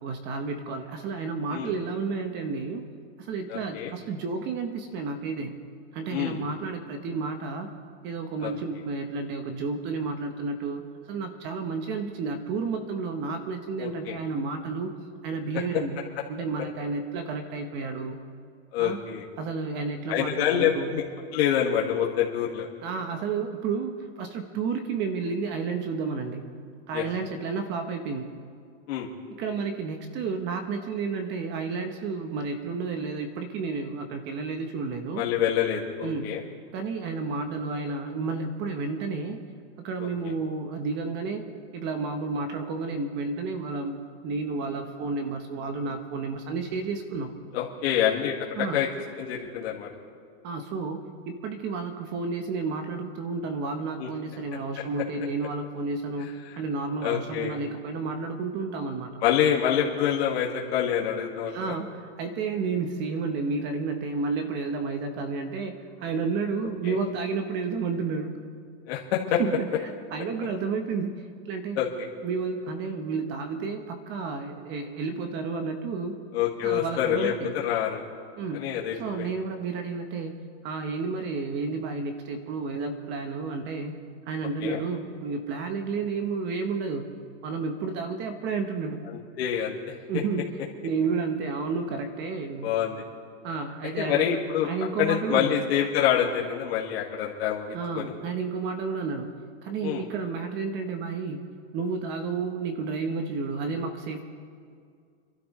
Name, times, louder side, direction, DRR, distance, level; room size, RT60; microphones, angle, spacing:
voice 1, 0.0-2.8 3.2-5.5 5.9-7.7 8.0-14.9 15.2-16.0 16.3-18.2 18.8-19.0 19.4-20.9 22.8-26.4 26.9-28.3 29.3-35.2 36.0-36.3 36.7-39.4 39.8-41.4 41.7-47.3 48.6-48.8 50.4-56.3 56.6-59.2 61.5-68.4 69.4-69.7 70.1-71.8 72.2-76.2 76.6-77.5 78.4-78.7 79.0-80.3 80.6-83.9 84.3-87.1 87.4-89.0 90.1-90.4 90.8-92.7 93.4-95.6 97.7-99.3 99.6-101.4 101.7-104.2, right 4 dB, 30° right, 6 dB, 1.0 m, -31 dB
voice 2, 3.5-3.9 6.1-6.4 8.4-8.5 13.8-14.2 18.7-19.3 20.1-21.0 21.3-22.7 26.9-27.0 28.9-29.1 35.2-36.4 47.5-48.3 48.7-48.9 49.2-49.9 54.0-54.1 57.0-57.6 59.2-61.7 66.8-67.0 68.9-69.4 71.8-72.1 76.3-78.0 78.5-79.3 84.6-84.8 89.1-89.9 92.6-93.0 94.0-94.7 95.0-98.1 99.8-100.1, left 9 dB, 70° left, -4 dB, 2.0 m, -26 dB
26.5 x 12.5 x 3.2 m, 2.2 s
supercardioid pair, 155°, 33 cm